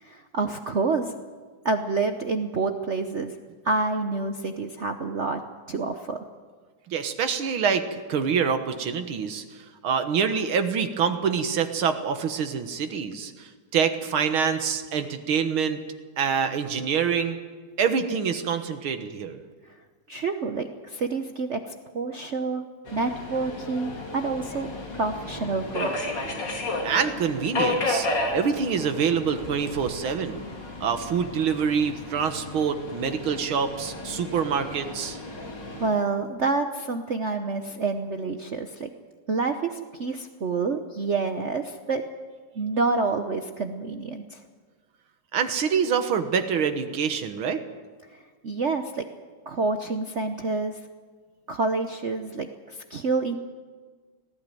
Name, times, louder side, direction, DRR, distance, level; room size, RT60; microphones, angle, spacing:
voice 1, 0.0-1.2 1.6-3.3 3.6-5.4 5.7-6.2 19.7-19.8 20.1-21.6 21.9-22.6 22.9-24.7 24.9-26.0 35.7-38.9 39.3-42.0 42.5-44.4 48.4-49.1 49.5-50.8 51.5-53.4, right 3 dB, 50° right, 6 dB, 0.9 m, -28 dB
voice 2, 6.9-9.4 9.8-15.8 16.2-17.4 17.8-19.4 26.8-28.1 28.3-30.4 30.8-35.2 45.3-47.6, right 6 dB, 85° right, 8 dB, 2.2 m, -26 dB
Subway metro underground, 22.9-35.9, left 2 dB, 60° left, 3.6 m, -33 dB
19.0 x 15.0 x 9.2 m, 1.5 s
omnidirectional pair, 2.2 m